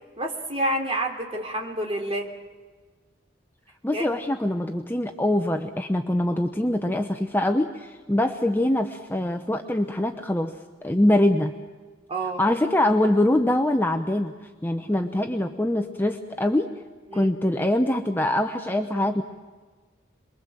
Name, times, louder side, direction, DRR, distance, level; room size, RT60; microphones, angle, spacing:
voice 1, 0.2-2.3 3.9-4.2 12.1-12.4 17.1-17.3, right 1 dB, 30° right, 1 dB, 3.0 m, -28 dB
voice 2, 3.8-11.5 12.4-14.3 14.6-16.7 17.1-19.2, left 1 dB, 10° left, 5 dB, 0.7 m, -23 dB
27.0 x 22.0 x 7.5 m, 1.4 s
head